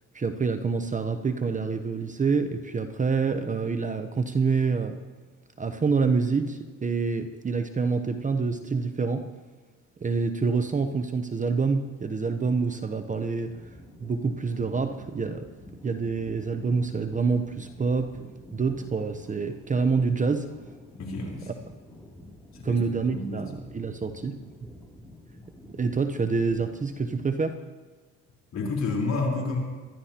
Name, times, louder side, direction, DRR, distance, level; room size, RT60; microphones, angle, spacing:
voice 1, 0.1-5.0 5.6-9.2 10.0-13.6 14.0-15.5 15.8-18.1 18.5-20.5 22.6-24.4 25.7-27.6, right 4 dB, 25° right, 8 dB, 0.8 m, -27 dB
sound 1, 13.1-27.3, left 1 dB, 5° left, 2.9 m, -49 dB
voice 2, 21.0-21.5 22.5-23.4 28.5-29.6, left 3 dB, 55° left, -1 dB, 4.1 m, -30 dB
22.5 x 12.0 x 2.9 m, 1.3 s
cardioid pair, 95°, 33 cm